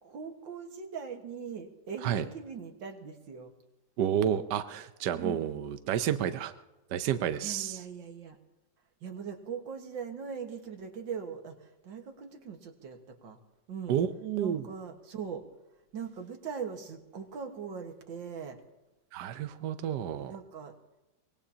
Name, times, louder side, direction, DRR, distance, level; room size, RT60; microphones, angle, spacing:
voice 1, 0.0-3.5 5.1-5.4 7.4-8.4 9.0-13.4 13.7-14.0 14.4-15.5 15.9-18.6 20.2-20.8, right 6 dB, 90° right, 4 dB, 2.3 m, -40 dB
voice 2, 4.0-6.5 6.9-7.8 13.9-14.6 19.1-20.3, right 9 dB, 70° right, 10 dB, 1.3 m, -30 dB
24.0 x 20.0 x 2.9 m, 1.0 s
omnidirectional pair, 2.0 m